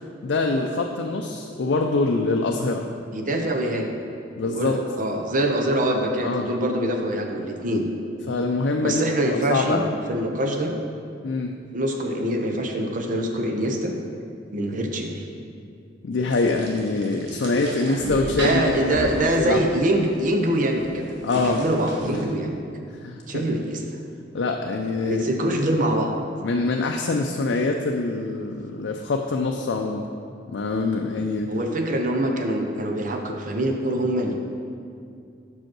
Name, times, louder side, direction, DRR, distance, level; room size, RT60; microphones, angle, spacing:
voice 1, 0.2-2.9 3.3-3.4 4.4-4.8 6.2-6.5 8.3-9.9 11.2-11.5 16.0-19.6 21.2-21.6 23.0-23.6 24.3-25.2 26.4-30.1 30.5-31.5, left 3 dB, 80° left, 2 dB, 0.4 m, -24 dB
voice 2, 3.1-3.9 4.4-7.9 8.8-9.8 10.1-10.8 11.7-14.0 14.5-15.2 17.7-21.1 21.4-22.6 23.3-23.8 25.0-26.1 31.5-34.3, right 1 dB, 50° right, 3 dB, 0.7 m, -24 dB
sound 1, 16.3-22.2, right 1 dB, 75° right, 1.4 m, -37 dB
5.7 x 5.1 x 6.0 m, 2.4 s
head